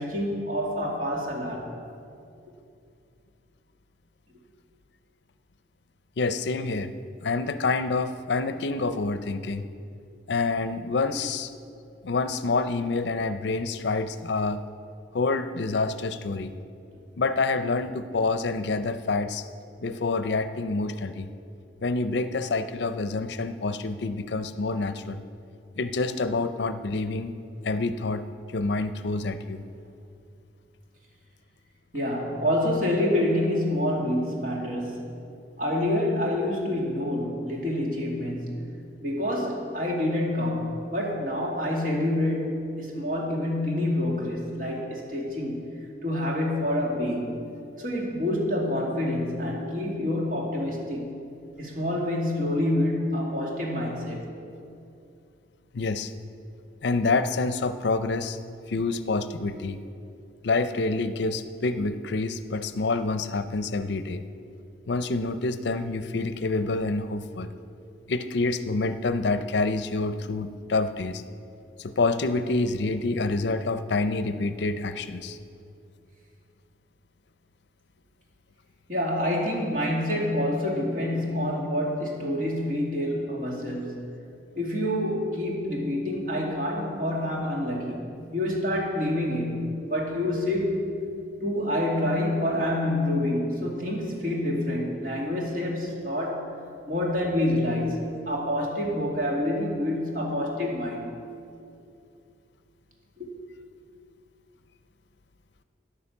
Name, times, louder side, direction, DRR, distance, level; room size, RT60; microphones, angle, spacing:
voice 1, 0.0-1.7 31.9-35.2 35.6-38.6 39.0-45.7 46.0-47.4 47.8-51.1 51.6-54.2 78.9-84.1 84.5-88.1 88.3-90.8 91.4-96.5 96.8-101.2 103.2-103.3, left 1 dB, 45° right, -2 dB, 2.3 m, -27 dB
voice 2, 6.2-6.9 7.2-9.6 10.3-11.5 12.0-14.6 15.1-16.5 17.2-19.4 19.8-21.3 21.8-25.2 25.8-27.3 27.6-28.2 28.5-29.6 55.7-56.1 56.8-58.4 58.7-59.8 60.4-64.2 64.9-67.5 68.1-71.2 71.8-75.4, left 3 dB, 70° left, 11 dB, 0.5 m, -27 dB
10.0 x 9.7 x 7.2 m, 2.5 s
head